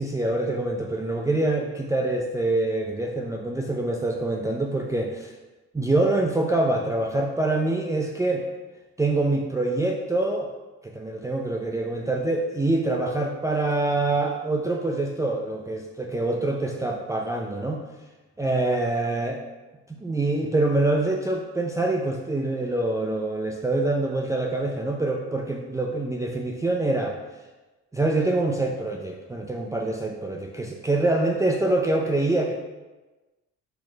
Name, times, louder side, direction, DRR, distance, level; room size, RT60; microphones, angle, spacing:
voice 1, 0.0-5.3 5.7-8.4 9.0-10.5 10.8-17.8 18.4-19.4 19.9-27.2 27.9-32.5, right 2 dB, 10° right, 0 dB, 0.5 m, -25 dB
4.5 x 4.4 x 4.7 m, 1.2 s
cardioid pair, 90°, 30 cm